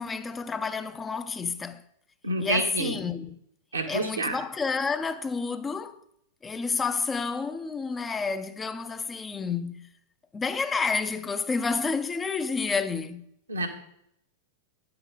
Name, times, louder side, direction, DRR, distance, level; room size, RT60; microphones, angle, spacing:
voice 1, 0.0-1.8 2.4-3.4 3.9-6.0 6.4-9.9 10.3-13.3, left 4 dB, 15° left, 0.4 m, -30 dB
voice 2, 2.2-3.0 3.7-4.3 13.5-13.7, right 2 dB, 80° right, 1.1 m, -28 dB
8.8 x 7.7 x 3.7 m
figure-of-eight pair, 95°, 0 cm